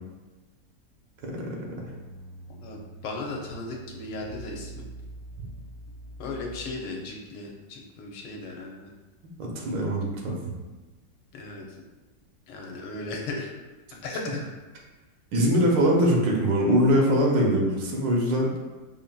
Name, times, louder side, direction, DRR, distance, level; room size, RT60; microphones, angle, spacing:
voice 1, 1.2-1.9 5.4-5.5 9.4-10.6 15.3-18.6, equal, 80° right, -1 dB, 1.4 m, -23 dB
sound 1, 1.7-7.1, right 1 dB, 65° left, 0.7 m, -44 dB
voice 2, 2.5-4.8 6.2-8.9 11.3-11.8 12.5-13.5 14.0-14.5, left 2 dB, 80° left, -1 dB, 1.2 m, -36 dB
5.5 x 2.6 x 2.2 m, 1.2 s
omnidirectional pair, 1.9 m